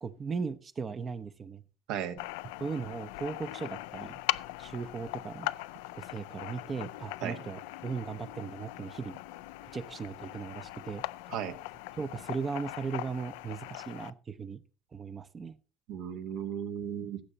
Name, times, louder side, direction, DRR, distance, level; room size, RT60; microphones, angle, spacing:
voice 1, 0.0-1.6 2.6-4.2 4.6-5.5 5.9-9.2 9.6-11.0 12.0-14.6 14.9-15.6, right 5 dB, 30° right, 11 dB, 0.7 m, -37 dB
voice 2, 1.9-2.2 7.2-7.4 11.3-11.6 15.9-17.2, right 9 dB, 75° right, 8 dB, 1.3 m, -35 dB
sound 1, 2.2-14.1, left 18 dB, 90° left, 0.4 m, -40 dB
15.5 x 6.8 x 4.0 m, 0.36 s
supercardioid pair, 105°, 0 cm